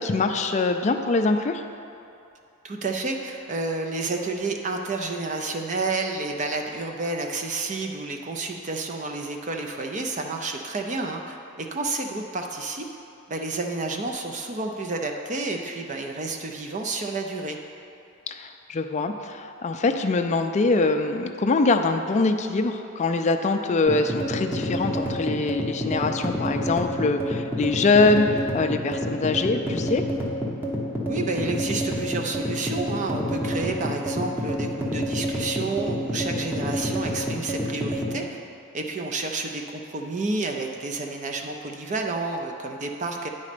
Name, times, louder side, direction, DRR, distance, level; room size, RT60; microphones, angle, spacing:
voice 1, 0.0-1.6 18.3-30.0, left 3 dB, 30° left, 5 dB, 0.3 m, -23 dB
voice 2, 2.6-12.8 13.3-17.6 31.1-38.4 38.7-43.3, right 3 dB, 35° right, 3 dB, 0.5 m, -30 dB
sound 1, 23.9-38.2, equal, 10° right, 0.8 m, -28 dB
9.5 x 4.2 x 5.0 m, 2.6 s
head